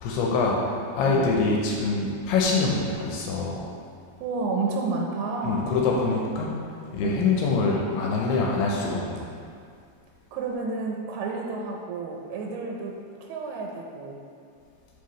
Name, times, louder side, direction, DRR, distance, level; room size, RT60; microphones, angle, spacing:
voice 1, 0.0-3.6 5.4-6.5 6.9-9.3, left 3 dB, 80° left, -2 dB, 2.5 m, -25 dB
voice 2, 1.0-1.4 4.2-5.7 7.0-7.4 10.3-14.2, right 3 dB, 90° right, 0 dB, 2.9 m, -30 dB
6.9 x 4.8 x 3.1 m, 2.3 s
omnidirectional pair, 4.9 m